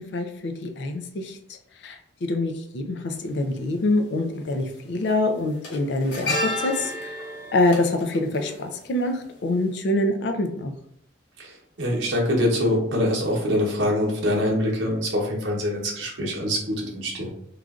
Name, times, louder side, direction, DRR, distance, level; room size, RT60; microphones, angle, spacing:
voice 1, 0.0-1.4 1.8-7.1 7.5-10.7, left 2 dB, 65° left, 5 dB, 0.4 m, -25 dB
sound 1, 3.1-3.2 4.5-4.7 5.0-9.3 9.6-9.7, left 1 dB, 85° left, 0.8 m, -32 dB
voice 2, 11.4-17.3, left 1 dB, 85° right, -2 dB, 0.8 m, -24 dB
3.1 x 2.4 x 2.4 m, 0.72 s
head